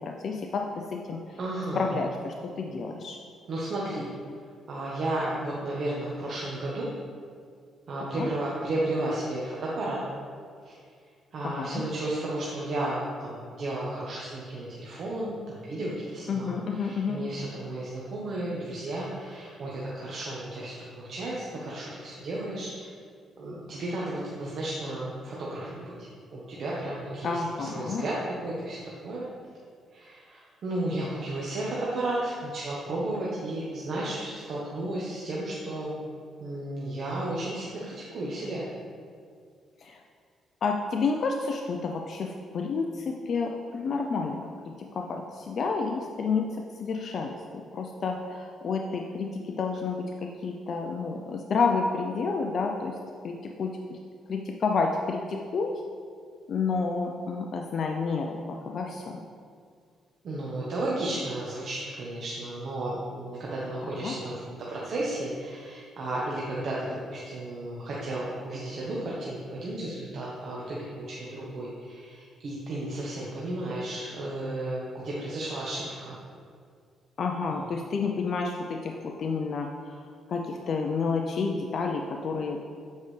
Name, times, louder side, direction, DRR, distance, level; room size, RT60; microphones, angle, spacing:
voice 1, 0.0-1.4 1.7-3.2 8.0-8.3 11.4-11.9 16.3-17.2 27.2-28.0 39.8-40.0 40.6-53.0 53.2-54.0 54.3-55.7 56.5-59.2 63.8-64.1 77.2-79.7 80.0-82.6, left 4 dB, 55° left, 2 dB, 0.5 m, -30 dB
voice 2, 1.4-1.9 3.5-4.1 4.7-6.9 7.9-10.0 10.6-10.7 11.3-22.9 23.4-25.9 26.3-29.2 29.9-35.9 36.4-38.6 60.2-76.2, right 1 dB, 60° right, -6 dB, 1.1 m, -33 dB
8.2 x 4.7 x 3.2 m, 2.2 s
cardioid pair, 90°, 0 cm